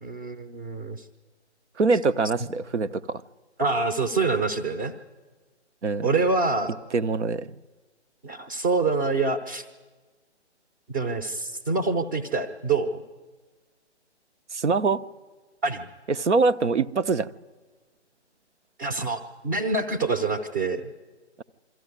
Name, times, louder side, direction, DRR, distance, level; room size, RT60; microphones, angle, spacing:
voice 1, 0.0-1.1 3.6-4.9 6.0-6.7 8.2-9.6 10.9-13.0 15.6-15.9 18.8-20.9, right 3 dB, 20° right, 0.7 m, -26 dB
voice 2, 1.8-3.2 5.8-6.1 6.9-7.5 14.5-15.0 16.1-17.3, right 4 dB, 75° right, 0.8 m, -24 dB
22.5 x 14.0 x 9.7 m
figure-of-eight pair, 140°, 35 cm